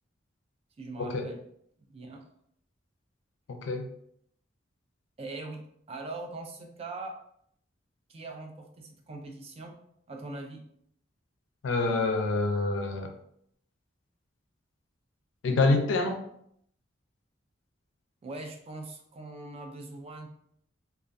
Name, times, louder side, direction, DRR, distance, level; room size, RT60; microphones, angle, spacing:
voice 1, 0.8-1.4 1.9-2.3 5.2-7.2 8.1-9.7 10.1-10.6 18.2-20.3, right 2 dB, 30° right, 3 dB, 0.3 m, -41 dB
voice 2, 3.5-3.8 11.6-13.1 15.4-16.2, left 3 dB, 80° left, 5 dB, 0.4 m, -26 dB
2.2 x 2.2 x 2.5 m, 0.70 s
head